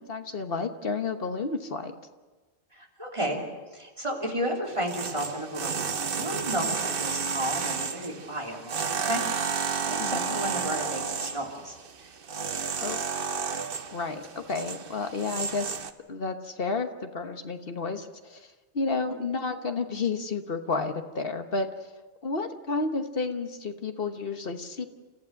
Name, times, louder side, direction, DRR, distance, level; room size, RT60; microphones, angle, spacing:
voice 1, 0.0-1.9 10.0-10.4 12.8-13.0 13.9-15.8 16.1-21.7 22.2-24.9, left 4 dB, 55° left, 7 dB, 1.4 m, -31 dB
voice 2, 2.7-3.4 3.7-9.3 9.5-11.8, equal, 25° right, 0 dB, 3.1 m, -33 dB
sound 1, 4.7-15.9, right 6 dB, 55° right, 1.0 m, -32 dB
30.0 x 14.5 x 6.5 m, 1.3 s
omnidirectional pair, 1.2 m